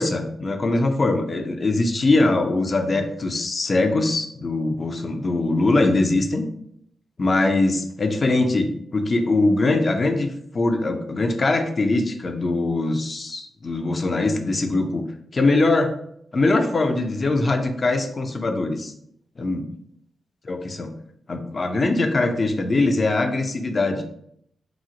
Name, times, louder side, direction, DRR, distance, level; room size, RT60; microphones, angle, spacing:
voice 1, 0.0-6.4 7.2-10.3 10.5-15.0 15.3-15.9 16.3-18.9 19.4-19.7 20.4-20.9 21.3-24.0, left 2 dB, 45° left, 6 dB, 0.5 m, -22 dB
2.9 x 2.0 x 3.7 m, 0.71 s
supercardioid pair, 55°, 0 cm